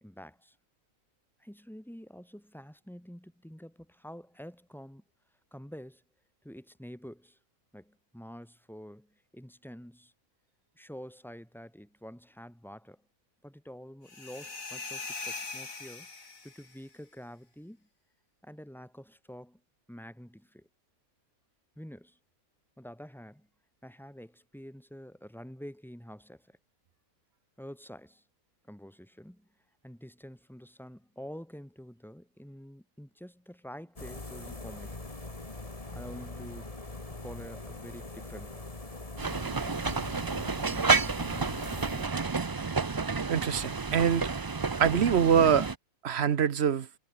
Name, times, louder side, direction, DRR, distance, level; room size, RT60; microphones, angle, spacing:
voice 1, 0.0-0.6 1.4-5.0 5.5-6.0 6.4-7.4 7.7-10.1 10.8-13.0 13.4-16.1 16.4-17.9 18.4-19.6 19.9-20.7 21.8-22.2 22.8-23.5 23.8-26.6 27.6-28.2 28.6-29.5 29.8-35.0 35.9-36.7 37.1-38.6, equal, ahead, 2.2 m, -47 dB
sound 1, 14.1-16.8, left 3 dB, 75° left, 3.6 m, -41 dB
sound 2, 34.0-42.1, left 2 dB, 25° left, 2.3 m, -42 dB
sound 3, 39.2-45.7, right 4 dB, 35° right, 0.3 m, -30 dB
voice 2, 43.3-44.3 44.8-45.7 46.0-46.9, right 8 dB, 55° right, 1.1 m, -24 dB
omnidirectional pair, 1.4 m